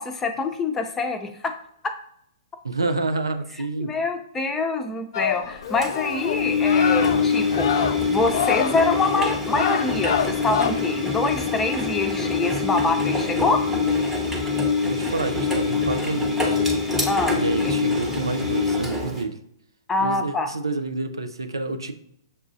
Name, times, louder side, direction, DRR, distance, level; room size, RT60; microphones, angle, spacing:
voice 1, 0.0-1.5 1.8-1.9 3.9-7.7 8.1-13.6 17.1-17.7 19.9-20.5, left 3 dB, 15° left, 5 dB, 0.6 m, -25 dB
voice 2, 2.6-3.9 14.8-16.6 17.3-19.4 20.0-22.0, right 3 dB, 90° right, 8 dB, 0.5 m, -28 dB
sound 1, 5.1-10.7, left 8 dB, 60° left, 0.3 m, -27 dB
Engine, 5.8-19.2, left 4 dB, 10° right, 1.0 m, -24 dB
6.6 x 2.3 x 2.7 m, 0.71 s
hypercardioid pair, 120°, 2 cm